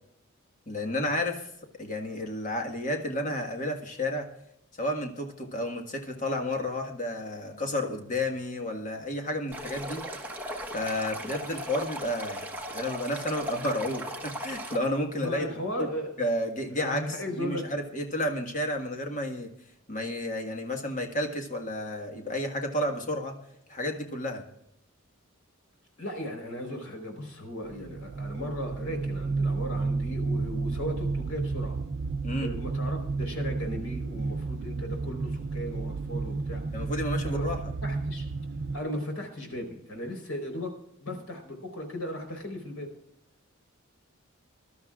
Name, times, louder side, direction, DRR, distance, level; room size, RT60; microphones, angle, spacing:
voice 1, 0.7-1.5 1.8-4.3 4.8-10.1 10.7-12.4 12.7-15.5 15.8-15.9 16.2-19.5 19.9-23.4 23.7-24.4 32.2-32.5 36.7-37.6, left 1 dB, 35° left, 3 dB, 1.6 m, -31 dB
Stream, 9.5-14.8, equal, 10° right, 1.2 m, -37 dB
voice 2, 15.1-16.1 16.8-17.7 26.0-31.8 32.3-36.9 37.2-37.5 37.8-38.3 38.7-40.7 41.0-42.9, equal, 85° left, 4 dB, 4.1 m, -36 dB
sound 1, 27.7-38.8, right 3 dB, 50° right, 0.4 m, -32 dB
21.5 x 12.0 x 2.4 m, 0.78 s
head